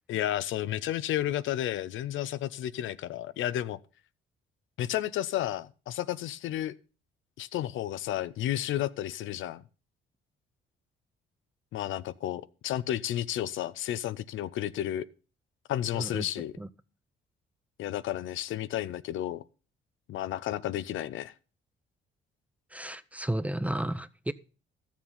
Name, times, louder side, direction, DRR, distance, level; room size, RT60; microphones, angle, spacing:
voice 1, 0.1-3.8 4.8-6.8 7.4-9.6 11.7-15.0 15.7-16.5 17.8-19.4 20.1-21.3, left 12 dB, 75° left, 0.6 m, -32 dB
voice 2, 15.9-16.3 16.6-16.7 22.7-24.3, right 1 dB, 5° right, 0.5 m, -33 dB
13.0 x 7.4 x 5.5 m
cardioid pair, 90°, 20 cm